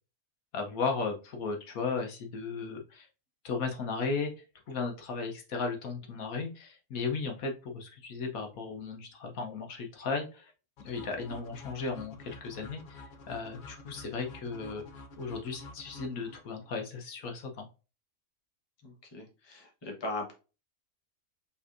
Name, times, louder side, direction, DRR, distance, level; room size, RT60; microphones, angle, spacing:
voice 1, 0.5-3.1 3.4-4.3 4.7-10.5 10.8-14.8 15.2-17.7, left 4 dB, 70° left, 3 dB, 1.3 m, -35 dB
sound 1, 10.8-16.7, left 2 dB, 45° left, 0.7 m, -49 dB
voice 2, 18.8-20.3, left 2 dB, 20° left, 1 dB, 1.0 m, -39 dB
5.5 x 3.3 x 2.5 m, 0.32 s
omnidirectional pair, 1.6 m